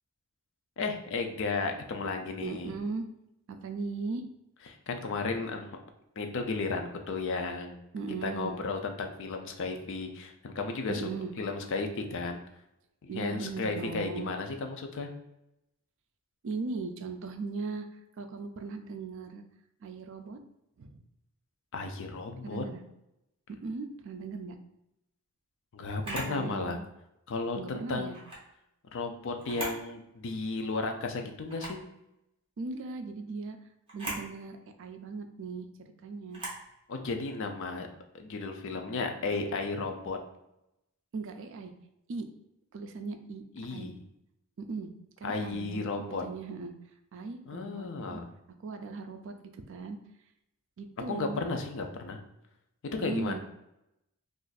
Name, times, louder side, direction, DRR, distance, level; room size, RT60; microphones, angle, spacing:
voice 1, 0.8-2.7 4.9-5.7 6.2-7.8 8.2-11.1 11.4-12.4 13.0-15.1 21.7-22.6 25.7-26.8 27.3-28.1 28.9-31.8 36.9-37.9 38.1-40.2 43.6-44.0 45.2-46.2 47.5-48.3 51.1-52.2 53.0-53.4, left 3 dB, 55° left, 5 dB, 0.4 m, -34 dB
voice 2, 2.4-3.1 3.5-4.3 7.9-8.6 10.9-11.3 13.1-14.3 16.4-19.4 19.8-20.4 20.8-21.0 22.4-22.8 23.6-24.6 26.0-26.8 27.6-28.2 32.6-33.6 33.9-36.4 41.1-41.7 42.1-42.3 42.7-43.4 43.7-43.9 44.7-44.9 45.2-46.7 47.1-48.2 48.6-50.0 50.8-51.4 52.9-53.4, right 4 dB, 55° right, 7 dB, 0.3 m, -38 dB
Camera, 26.0-26.4 28.1-28.4 29.4-29.9 30.3-30.4 31.5-31.8 33.9-34.3 36.3-36.6, right 1 dB, 25° right, 0.8 m, -38 dB
2.5 x 2.4 x 3.9 m, 0.86 s
head